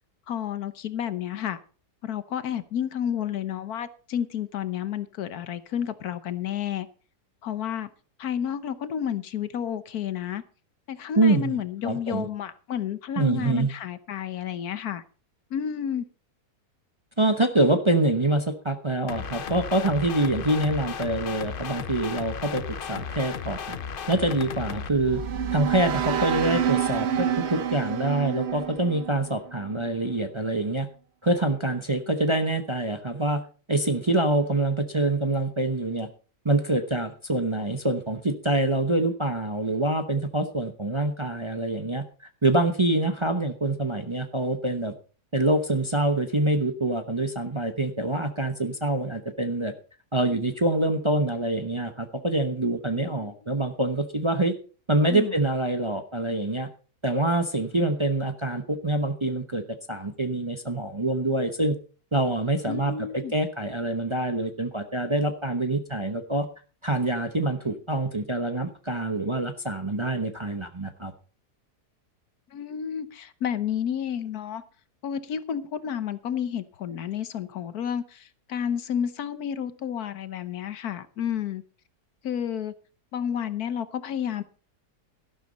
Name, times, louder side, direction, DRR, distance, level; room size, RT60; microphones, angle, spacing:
voice 1, 0.3-1.6 2.0-6.9 7.4-7.9 8.2-10.4 10.9-15.0 15.5-16.1 52.9-53.3 55.1-55.3 62.7-63.3 72.5-74.6 75.0-81.6 82.2-82.7 83.1-84.4, left 9 dB, 70° left, 1.4 m, -31 dB
voice 2, 11.2-11.6 11.8-12.3 13.2-13.7 17.2-22.6 22.9-23.8 24.1-25.2 25.5-30.9 31.2-33.4 33.7-36.1 36.4-42.0 42.4-44.9 45.3-49.7 50.1-54.5 54.9-56.7 57.0-59.6 59.9-61.7 62.1-66.5 66.8-71.1, right 2 dB, 20° right, 0.9 m, -25 dB
sound 1, 19.1-24.9, left 7 dB, 50° left, 0.7 m, -35 dB
sound 2, 24.7-29.8, right 9 dB, 50° right, 0.9 m, -28 dB
12.5 x 12.0 x 4.1 m
omnidirectional pair, 1.7 m